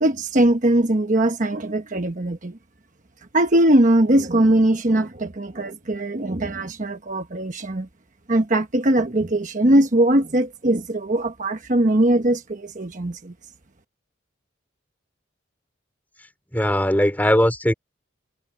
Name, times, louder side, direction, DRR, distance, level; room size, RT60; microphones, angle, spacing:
voice 1, 0.0-2.6 3.3-7.9 8.3-13.3, right 1 dB, 40° right, 1.2 m, -20 dB
voice 2, 16.5-17.7, equal, 10° left, 3.2 m, -19 dB
head